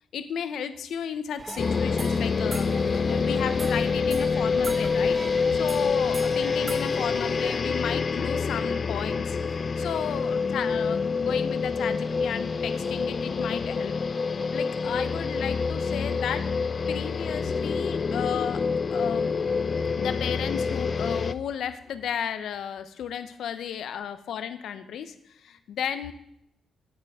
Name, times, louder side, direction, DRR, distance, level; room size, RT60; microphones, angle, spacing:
voice 1, 0.1-2.7 3.1-5.2 5.5-9.4 9.8-13.9 14.5-16.4 16.9-18.6 18.9-19.3 20.0-26.1, left 8 dB, 80° left, 10 dB, 0.8 m, -33 dB
sound 1, 1.4-7.6, right 3 dB, 25° right, 0.7 m, -40 dB
sound 2, 1.6-21.3, left 5 dB, 45° left, 0.4 m, -27 dB
13.5 x 7.4 x 3.6 m, 0.75 s
cardioid pair, 90°, 0 cm